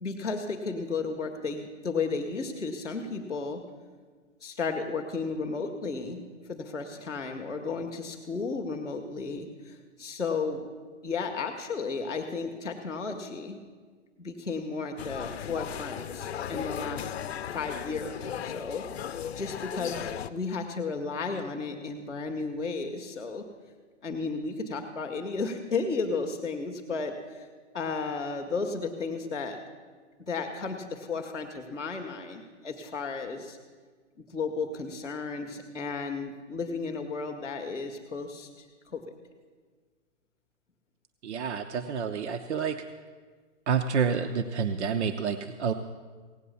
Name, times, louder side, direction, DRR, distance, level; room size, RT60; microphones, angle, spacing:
voice 1, 0.0-3.6 4.4-6.2 6.5-10.7 11.0-13.6 14.2-17.1 17.5-23.4 24.0-27.5 27.7-29.6 30.2-33.6 34.3-39.0, left 4 dB, 5° left, -12 dB, 0.3 m, -33 dB
sound 1, 15.0-20.3, left 9 dB, 55° left, 0.6 m, -36 dB
voice 2, 41.2-42.8 43.7-45.7, right 6 dB, 65° right, 7 dB, 0.8 m, -28 dB
17.0 x 8.5 x 6.9 m, 1.5 s
hypercardioid pair, 150°, 37 cm